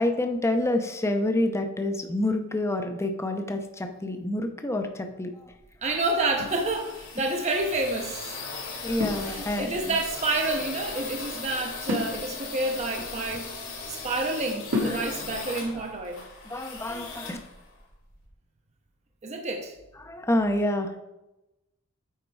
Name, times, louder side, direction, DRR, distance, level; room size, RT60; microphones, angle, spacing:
voice 1, 0.0-5.5 8.8-10.0 12.7-13.1 14.8-15.1 15.7-15.8 16.4-17.4 20.0-21.0, left 1 dB, 15° left, 5 dB, 0.7 m, -28 dB
sound 1, 5.5-18.3, left 4 dB, 65° left, 2.6 m, -39 dB
voice 2, 5.8-8.4 9.2-16.2 19.2-19.7, right 2 dB, 35° right, 2 dB, 0.8 m, -29 dB
sound 2, 6.4-7.4 9.0-9.9 11.9-13.9 14.7-15.5, left 2 dB, 70° right, 1.6 m, -33 dB
9.3 x 4.4 x 4.6 m, 0.96 s
head